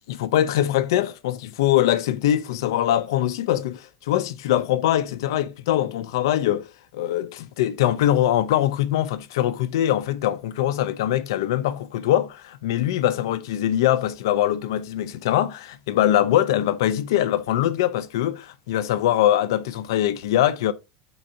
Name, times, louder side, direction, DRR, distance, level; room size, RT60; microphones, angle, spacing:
voice 1, 0.1-6.7 6.9-20.7, left 12 dB, 90° left, 0.5 m, -22 dB
3.8 x 2.6 x 4.3 m
supercardioid pair, 175°, 2 cm